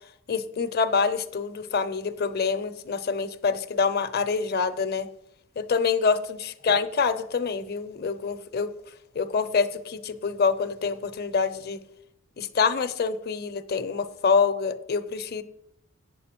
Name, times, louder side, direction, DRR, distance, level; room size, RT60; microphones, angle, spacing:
voice 1, 0.3-5.1 5.6-8.7 9.1-11.8 12.4-15.4, left 5 dB, 50° left, 11 dB, 0.7 m, -26 dB
8.0 x 7.7 x 5.9 m, 0.79 s
head